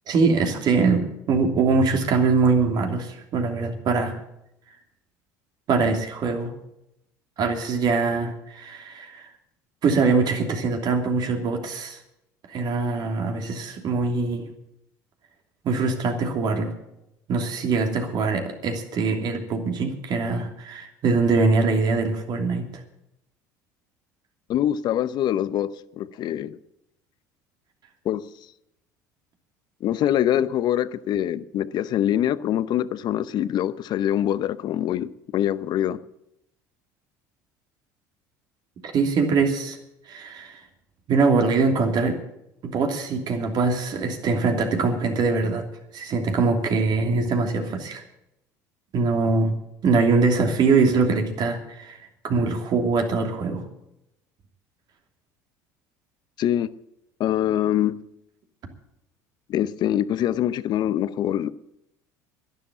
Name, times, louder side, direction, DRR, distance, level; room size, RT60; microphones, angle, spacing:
voice 1, 0.1-4.2 5.7-6.5 7.4-9.3 9.8-12.0 12.5-14.5 15.6-16.7 17.3-22.8 38.9-39.8 40.1-40.6 41.1-42.2 42.6-45.7 45.9-48.0 48.9-49.5 49.8-53.6, right 4 dB, 50° right, 2.9 m, -23 dB
voice 2, 24.5-25.7 26.0-26.6 28.0-28.3 29.8-36.0 56.4-56.7 57.2-57.9 59.5-61.5, left 11 dB, 55° left, 0.8 m, -24 dB
11.5 x 11.0 x 8.5 m
hypercardioid pair, 80°, 9 cm